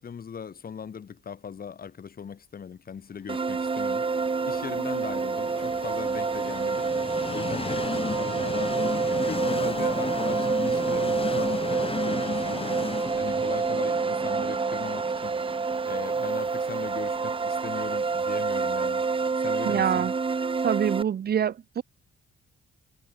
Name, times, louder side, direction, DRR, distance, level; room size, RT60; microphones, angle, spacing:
voice 1, 0.0-4.1 4.4-6.9 7.3-15.4 15.9-19.0 19.4-20.1, left 7 dB, 50° left, 5.9 m, -39 dB
sound 1, 3.3-21.0, right 4 dB, 25° right, 1.1 m, -28 dB
Train, 3.7-19.5, left 4 dB, 30° left, 6.1 m, -35 dB
voice 2, 19.6-20.1 20.6-21.8, right 8 dB, 50° right, 1.5 m, -25 dB
cardioid pair, 90°, 20 cm